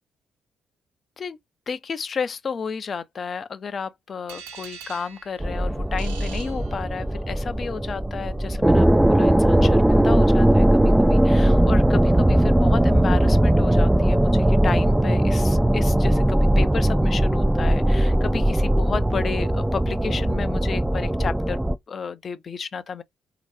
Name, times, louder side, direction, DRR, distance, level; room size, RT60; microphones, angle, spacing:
voice 1, 1.7-21.6 21.9-23.0, left 6 dB, 45° left, 0.6 m, -32 dB
sound 1, 4.3-7.3, right 6 dB, 80° right, 1.1 m, -43 dB
sound 2, 5.4-21.8, right 1 dB, 10° right, 0.5 m, -19 dB
3.9 x 2.9 x 3.3 m
figure-of-eight pair, 45°, 0 cm